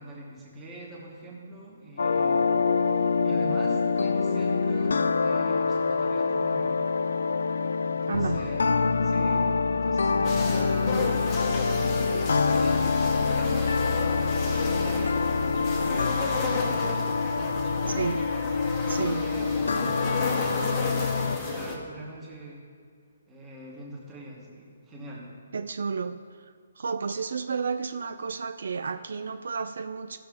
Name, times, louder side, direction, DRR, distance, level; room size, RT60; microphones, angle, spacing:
voice 1, 0.0-2.5 2.8-6.8 7.8-8.6 9.0-11.3 11.7-17.1 17.3-18.1 18.7-22.6 23.3-25.3, right 2 dB, 10° right, -4 dB, 1.2 m, -43 dB
sound 1, 2.0-21.4, left 4 dB, 75° left, 0.4 m, -25 dB
voice 2, 8.1-8.4 18.0-18.2 18.9-19.2 25.5-26.2 26.8-30.2, right 5 dB, 60° right, 10 dB, 0.3 m, -31 dB
sound 2, 10.2-21.8, left 3 dB, 15° left, 0.9 m, -33 dB
16.5 x 6.4 x 3.6 m, 2.1 s
hypercardioid pair, 180°, 0 cm